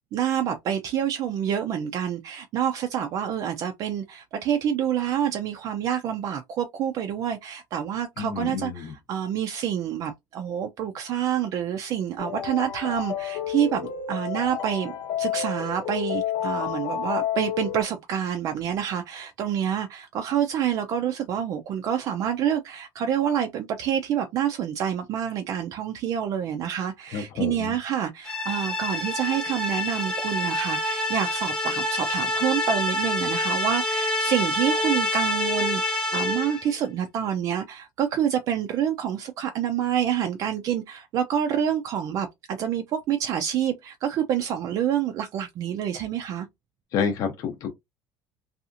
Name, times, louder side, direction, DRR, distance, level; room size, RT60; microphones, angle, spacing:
voice 1, 0.1-14.9 15.2-46.5, right 9 dB, 45° right, 0.3 m, -27 dB
voice 2, 8.2-8.9 27.1-27.8 46.9-47.7, left 6 dB, 45° left, 0.6 m, -29 dB
sound 1, 12.2-17.8, left 9 dB, 90° left, 1.1 m, -30 dB
sound 2, 28.2-36.7, left 1 dB, 10° left, 0.7 m, -27 dB
2.7 x 2.3 x 2.4 m
cardioid pair, 170°, 8 cm